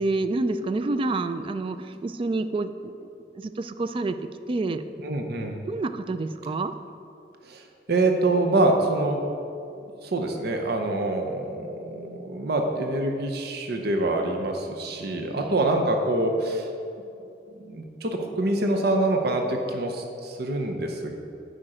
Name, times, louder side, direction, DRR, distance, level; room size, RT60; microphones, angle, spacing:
voice 1, 0.0-2.9 3.4-4.2 4.5-4.8 5.7-6.7 15.4-15.6, right 2 dB, 30° right, 10 dB, 0.3 m, -28 dB
voice 2, 5.0-5.7 7.4-9.2 10.0-16.7 17.5-21.2, right 2 dB, 60° right, 3 dB, 0.7 m, -25 dB
8.7 x 5.1 x 4.9 m, 2.6 s
head